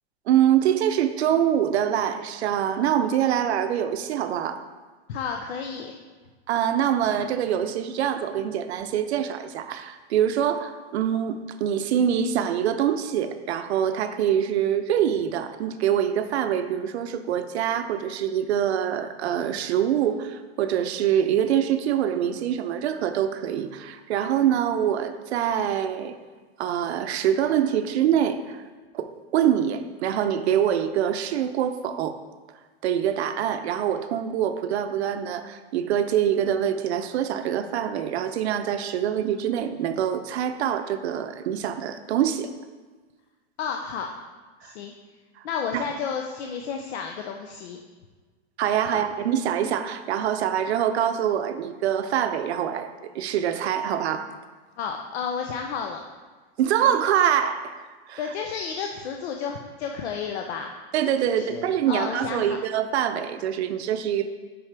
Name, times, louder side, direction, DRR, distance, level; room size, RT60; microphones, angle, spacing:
voice 1, 0.3-4.6 6.5-26.2 26.6-28.6 28.9-32.2 32.8-42.5 44.6-44.7 45.7-45.8 48.6-54.3 56.6-57.8 58.1-58.2 60.9-64.3, right 9 dB, 85° right, 10 dB, 0.6 m, -25 dB
voice 2, 5.1-5.9 43.6-44.1 44.6-44.9 45.4-47.8 48.8-49.0 54.8-56.0 58.2-60.7 61.2-62.6, left 6 dB, 80° left, 3 dB, 0.6 m, -31 dB
5.7 x 5.4 x 3.4 m, 1.4 s
supercardioid pair, 155°, 32 cm